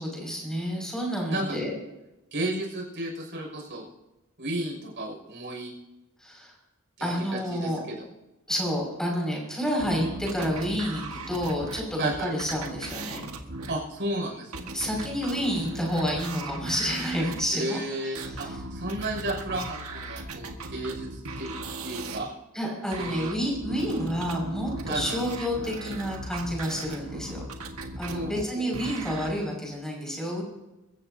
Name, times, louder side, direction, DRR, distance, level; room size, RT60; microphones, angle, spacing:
voice 1, 0.0-1.8 6.2-6.5 7.0-7.8 8.5-13.3 14.7-18.5 22.5-27.4 28.0-30.4, equal, 5° left, -2 dB, 6.0 m, -29 dB
voice 2, 2.3-3.8 4.4-5.7 7.0-8.0 12.0-12.3 13.7-14.8 17.5-21.5 21.8-22.3 23.0-23.3 24.9-25.2 28.1-28.7, right 1 dB, 55° right, 0 dB, 6.2 m, -33 dB
sound 1, 9.8-17.4 18.1-22.2 22.9-29.3, right 2 dB, 80° right, 1.7 m, -38 dB
26.0 x 15.0 x 2.8 m, 0.99 s
head